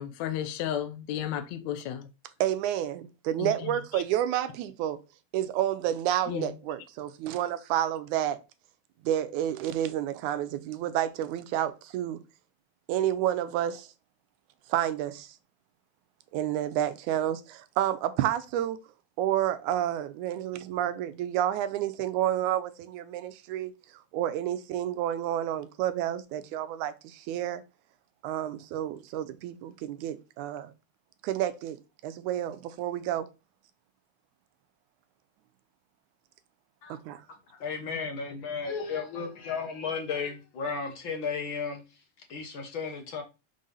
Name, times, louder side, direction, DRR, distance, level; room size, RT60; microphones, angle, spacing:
voice 1, 0.0-2.1 3.4-4.0 6.3-6.5, left 10 dB, 75° left, 1.9 m, -33 dB
voice 2, 2.4-5.0 5.3-8.4 9.1-12.2 12.9-13.7 14.7-15.1 16.3-17.4 17.8-18.8 19.2-23.7 24.1-26.9 27.3-27.6 28.2-30.7 31.3-31.8 32.0-33.2 37.1-37.2, right 11 dB, 85° right, 2.0 m, -29 dB
voice 3, 37.3-41.8 42.3-43.2, left 5 dB, 60° left, 1.4 m, -34 dB
5.6 x 3.9 x 5.4 m
omnidirectional pair, 3.4 m